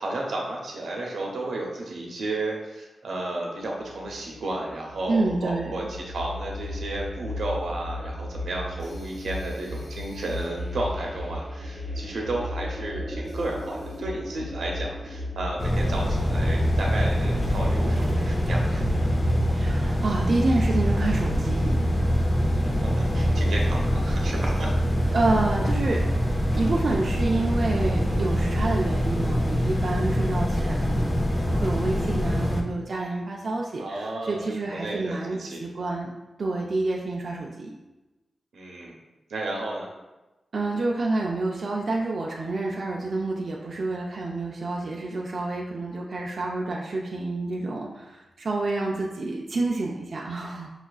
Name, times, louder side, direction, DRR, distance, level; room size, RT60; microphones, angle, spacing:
voice 1, 0.0-18.9 22.8-24.7 33.8-35.6 38.5-38.9 39.3-39.9, right 2 dB, 85° right, -1 dB, 0.7 m, -33 dB
sound 1, 3.8-19.5, left 1 dB, 65° left, 1.3 m, -36 dB
voice 2, 5.1-5.7 19.5-21.8 25.1-26.1 26.5-36.1 36.4-37.8 40.5-50.7, right 2 dB, 55° right, -2 dB, 0.4 m, -28 dB
sound 2, 15.6-32.6, equal, 30° left, 0.5 m, -24 dB
5.6 x 2.4 x 2.3 m, 1.1 s
wide cardioid pair, 110°, 0 cm